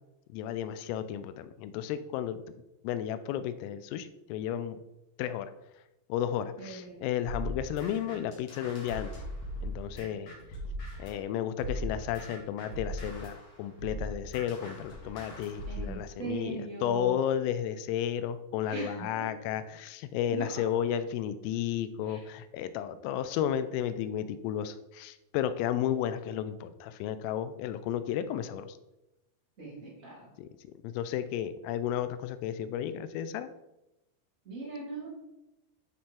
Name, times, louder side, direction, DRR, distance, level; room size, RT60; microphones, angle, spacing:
voice 1, 0.3-2.4 2.8-4.8 5.2-5.5 6.1-9.1 9.6-10.3 11.0-28.8 30.4-30.5 30.8-33.5, left 10 dB, 85° left, 12 dB, 3.2 m, -33 dB
voice 2, 6.6-7.1 15.7-17.2 18.7-19.2 20.3-20.5 22.1-22.2 29.6-30.3 34.4-35.1, right 3 dB, 20° right, -7 dB, 2.4 m, -39 dB
sound 1, 7.2-11.2 11.6-16.0, equal, 55° left, 2.1 m, -39 dB
12.0 x 4.3 x 3.6 m, 0.94 s
omnidirectional pair, 5.8 m